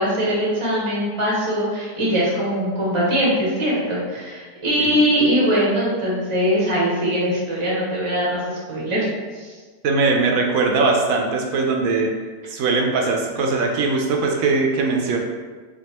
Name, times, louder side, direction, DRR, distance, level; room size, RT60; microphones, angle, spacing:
voice 1, 0.0-9.1 9.3-9.6, equal, 25° right, -6 dB, 0.7 m, -21 dB
voice 2, 9.8-12.1 12.5-15.2, right 3 dB, 70° right, 1 dB, 1.0 m, -20 dB
4.4 x 2.5 x 2.9 m, 1.5 s
omnidirectional pair, 1.6 m